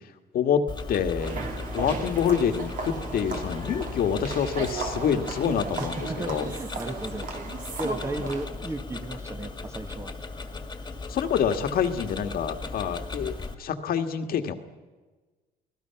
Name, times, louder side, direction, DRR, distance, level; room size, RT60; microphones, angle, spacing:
Tick-tock, 0.7-13.5, left 3 dB, 25° left, 2.0 m, -37 dB
voice 1, 0.9-1.4 1.7-6.5 8.2-8.3 11.1-14.6, left 7 dB, 60° left, 7 dB, 1.7 m, -27 dB
sound 1, 1.2-8.4, right 4 dB, 55° right, 3.1 m, -36 dB
voice 2, 5.8-7.4 7.8-10.1, right 2 dB, 15° right, 8 dB, 1.6 m, -35 dB
28.5 x 19.0 x 5.9 m, 1.3 s
cardioid pair, 110°, 17 cm